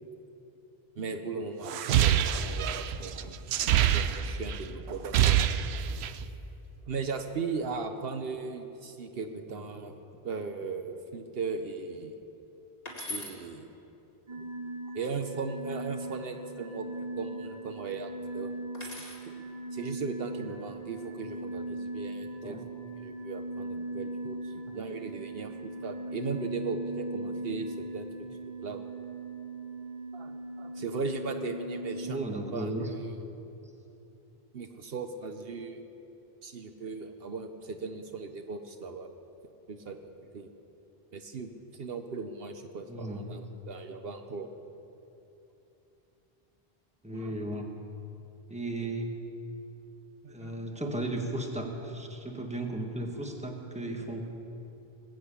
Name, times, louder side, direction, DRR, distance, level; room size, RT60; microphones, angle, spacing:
voice 1, 1.0-3.4 3.9-5.5 5.8-6.0 6.9-10.0 10.2-12.1 13.1-13.7 14.3-14.4 14.9-16.9 17.2-19.3 19.7-22.6 23.0-28.3 28.6-28.8 30.1-33.1 34.5-35.8 36.4-39.1 39.7-40.5 41.1-44.5 47.1-47.3 50.2-50.6, right 4 dB, 70° right, 7 dB, 1.0 m, -38 dB
sound 1, 1.7-4.6 4.9-6.3, right 10 dB, 90° right, 0.9 m, -25 dB
voice 2, 3.4-3.9 9.5-9.7 22.2-22.6 32.0-32.9 42.9-43.3 47.0-47.7 48.5-49.2 50.3-54.2, right 1 dB, 5° right, 2 dB, 1.3 m, -35 dB
sound 2, 12.9-13.4 15.6-16.2 18.7-19.3 20.6-21.0, left 1 dB, 40° left, 2.4 m, -41 dB
sound 3, 14.3-32.1, right 2 dB, 40° right, 1.4 m, -39 dB
20.0 x 7.8 x 8.4 m, 2.9 s
omnidirectional pair, 1.0 m